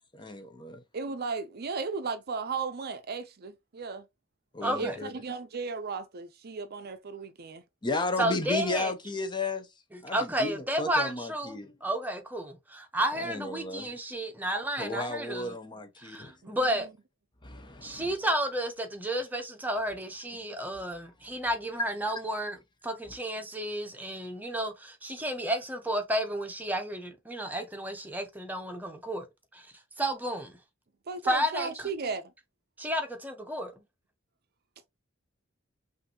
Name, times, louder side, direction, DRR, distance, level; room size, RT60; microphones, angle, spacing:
voice 1, 0.1-0.8 4.5-5.1 7.8-9.7 10.0-11.7 13.2-13.9 14.8-16.3 17.4-18.1, left 2 dB, 20° left, 0.7 m, -34 dB
voice 2, 0.9-4.0 4.6-7.6 16.4-16.6 31.1-32.3, right 4 dB, 50° right, 0.5 m, -35 dB
voice 3, 4.6-5.0 8.2-8.9 9.9-15.6 16.0-16.9 17.8-29.3 30.0-30.6 31.2-31.9 32.8-33.7, right 1 dB, 10° right, 0.9 m, -32 dB
5.7 x 2.6 x 2.8 m
head